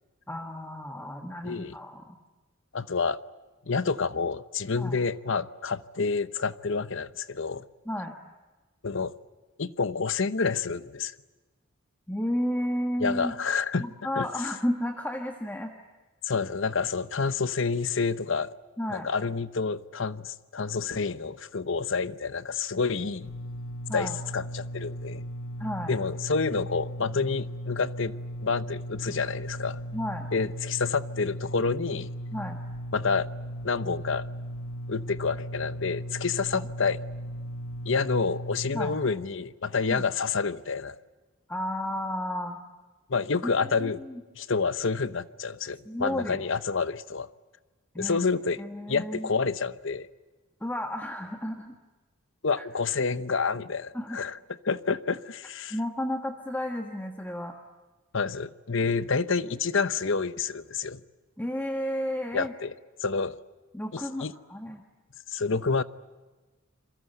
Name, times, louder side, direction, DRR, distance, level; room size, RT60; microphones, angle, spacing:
voice 1, 0.3-2.2 4.7-5.0 7.8-8.2 12.1-13.3 13.8-15.7 18.8-19.1 23.9-24.2 25.6-25.9 29.9-30.3 32.3-32.6 36.5-36.6 38.7-39.0 39.9-40.0 41.5-42.6 43.4-43.5 43.8-44.1 45.8-46.4 47.9-48.2 48.6-49.3 50.6-51.7 52.6-52.7 53.9-54.2 55.7-57.5 61.4-62.5 63.7-64.8, equal, 10° left, 1.6 m, -32 dB
voice 2, 1.4-1.8 2.7-3.2 3.7-7.6 8.8-9.1 9.6-11.1 13.0-13.8 14.1-14.3 16.2-18.5 18.9-23.3 23.9-25.2 25.9-28.2 28.4-29.8 30.3-32.1 32.9-33.3 33.6-34.3 34.9-37.0 37.8-41.0 43.1-44.0 44.4-47.3 48.0-48.6 48.9-50.1 52.4-54.4 54.6-55.8 58.1-61.0 62.3-62.7 63.0-63.4 63.9-64.3 65.3-65.8, left 4 dB, 60° left, 0.9 m, -28 dB
sound 1, 23.2-39.0, equal, 85° left, 1.3 m, -37 dB
28.0 x 22.5 x 8.0 m
head